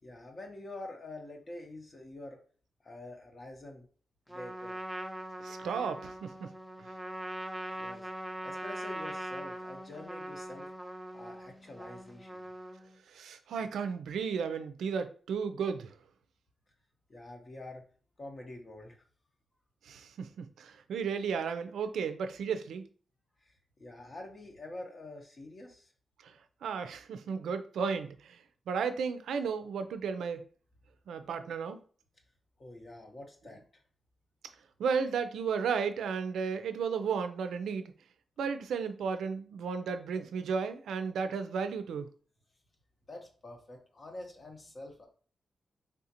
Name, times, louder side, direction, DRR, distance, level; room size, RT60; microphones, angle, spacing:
voice 1, 0.0-2.4 2.8-3.9 4.3-4.8 7.8-8.1 8.4-10.7 11.1-12.4 17.1-17.8 18.2-19.0 23.4-23.5 23.8-25.9 32.6-33.8 43.1-45.1, left 2 dB, 45° left, 0.9 m, -46 dB
Trumpet, 4.3-13.0, right 1 dB, ahead, 0.6 m, -41 dB
voice 2, 5.4-6.5 6.8-6.9 13.1-15.9 19.8-22.8 26.2-26.3 26.6-30.4 31.1-31.8 34.8-37.9 38.4-42.1, right 6 dB, 90° right, 0.3 m, -34 dB
3.5 x 2.5 x 2.8 m
cardioid pair, 60°, 0 cm